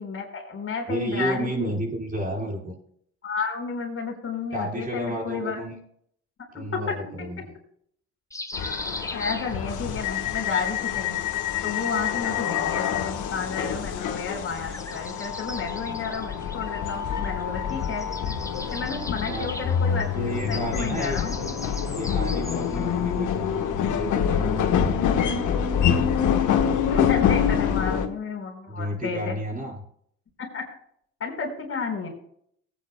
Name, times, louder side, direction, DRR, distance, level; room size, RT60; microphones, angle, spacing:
voice 1, 0.0-1.8 3.2-5.6 6.5-7.1 8.6-8.7 9.1-11.2 11.6-18.0 18.7-21.4 26.9-29.3 30.4-30.7 31.2-32.1, left 5 dB, 45° left, 1 dB, 4.3 m, -32 dB
voice 2, 0.9-2.7 4.5-5.8 6.5-7.5 19.2-19.8 20.1-21.2 21.4-21.6 21.9-25.0 28.7-29.7, right 1 dB, 30° right, -2 dB, 5.1 m, -31 dB
sound 1, 8.3-10.0 11.5-12.5 14.4-17.4 17.7-22.9, left 2 dB, 10° left, 1.0 m, -39 dB
sound 2, 8.5-28.1, left 8 dB, 80° left, 1.5 m, -26 dB
19.0 x 9.5 x 2.3 m, 0.65 s
cardioid pair, 90°, 30 cm